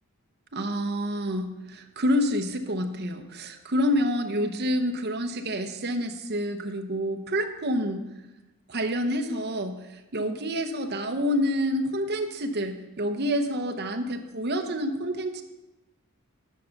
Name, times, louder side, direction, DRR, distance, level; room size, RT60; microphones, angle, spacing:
voice 1, 0.5-8.0 8.7-15.4, equal, 50° right, 5 dB, 0.9 m, -28 dB
9.3 x 5.9 x 6.5 m, 1.0 s
head